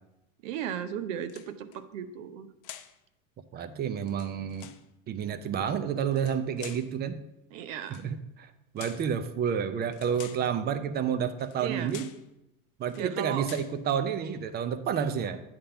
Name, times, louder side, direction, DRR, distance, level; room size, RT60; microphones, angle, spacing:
voice 1, 0.4-2.5 7.5-8.0 11.6-12.0 13.0-13.5, right 9 dB, 70° right, 11 dB, 0.8 m, -35 dB
sound 1, 1.2-1.8 2.6-3.0 4.0-4.8 6.1-6.9 7.8-8.1 8.8-9.1 9.9-10.5 11.4-11.6 11.9-12.2 12.8-13.1 13.4-13.8, left 12 dB, 50° left, 0.6 m, -47 dB
voice 2, 3.5-4.7 5.1-7.2 7.9-12.1 12.8-15.4, right 7 dB, 25° right, 11 dB, 0.5 m, -30 dB
8.7 x 3.7 x 5.7 m, 0.88 s
hypercardioid pair, 110°, 40 cm